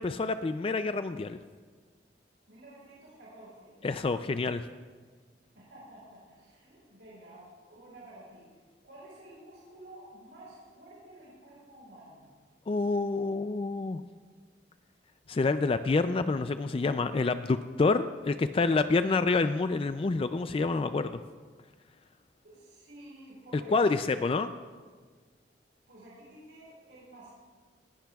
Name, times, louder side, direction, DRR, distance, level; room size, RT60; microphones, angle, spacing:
voice 1, 0.0-1.4 3.8-4.6 12.7-14.0 15.3-21.2 23.7-24.5, left 3 dB, 30° left, 10 dB, 0.3 m, -27 dB
voice 2, 2.5-3.8 5.5-8.5 8.8-12.3 22.4-24.2 25.9-27.3, right 1 dB, 90° right, -7 dB, 4.5 m, -50 dB
20.0 x 16.5 x 2.3 m, 1.5 s
head